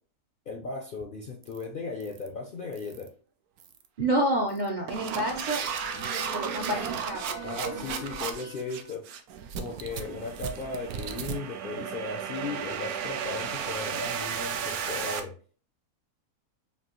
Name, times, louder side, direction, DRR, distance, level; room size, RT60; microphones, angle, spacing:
voice 1, 0.5-3.1 7.4-9.1 9.6-15.3, left 3 dB, 60° left, 2 dB, 0.5 m, -36 dB
sound 1, 1.4-1.6 2.0-2.3 2.7-3.1 3.6-3.9 4.5-15.2, right 7 dB, 90° right, 1.1 m, -34 dB
voice 2, 4.0-5.6 6.1-7.2 7.7-7.8 8.4-8.5, right 1 dB, 60° right, 0 dB, 0.4 m, -29 dB
Wind instrument woodwind instrument, 5.5-8.9, left 5 dB, 85° left, 1.5 m, -45 dB
5.2 x 2.4 x 2.9 m, 0.41 s
omnidirectional pair, 1.5 m